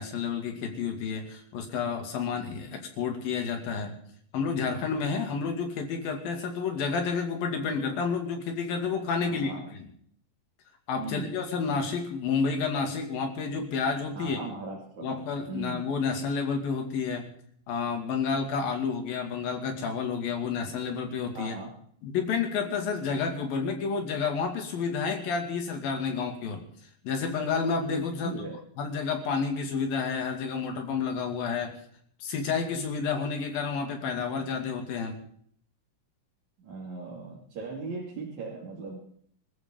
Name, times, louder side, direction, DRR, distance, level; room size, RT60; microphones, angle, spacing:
voice 1, 0.0-4.0 4.3-9.5 9.8-9.9 10.9-14.4 15.0-17.3 17.7-21.6 22.0-26.6 27.0-28.3 28.8-31.8 32.2-35.2, left 5 dB, 85° left, 3 dB, 4.1 m, -30 dB
voice 2, 9.2-9.6 11.0-11.3 14.1-15.2 15.5-15.9 21.3-21.7 28.1-28.6 36.6-39.0, right 3 dB, 55° right, -4 dB, 3.8 m, -38 dB
25.5 x 14.0 x 3.9 m, 0.63 s
omnidirectional pair, 4.0 m